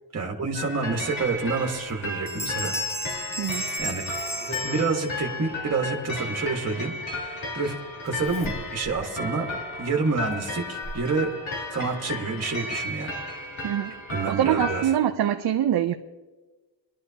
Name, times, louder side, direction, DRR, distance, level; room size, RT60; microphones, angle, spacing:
voice 1, 0.1-2.7 3.8-4.0 4.6-6.9 7.5-7.8 8.0-9.5 9.8-11.3 11.7-13.1 14.1-14.8, right 4 dB, 35° right, 1 dB, 1.5 m, -28 dB
sound 1, 0.6-15.0, left 2 dB, 75° left, 3.1 m, -34 dB
sound 2, 1.8-2.0 2.3-5.4, left 1 dB, 5° left, 0.7 m, -34 dB
Zipper (clothing), 3.1-4.9 6.3-6.4 8.1-9.0 9.5-9.6 10.3-11.1 12.3-12.4 12.8-12.9, right 1 dB, 25° left, 1.7 m, -40 dB
voice 2, 3.4-3.7 13.6-13.9 14.3-15.9, right 10 dB, 55° right, 5 dB, 0.6 m, -24 dB
21.5 x 11.5 x 2.8 m, 1.2 s
wide cardioid pair, 165°, 47 cm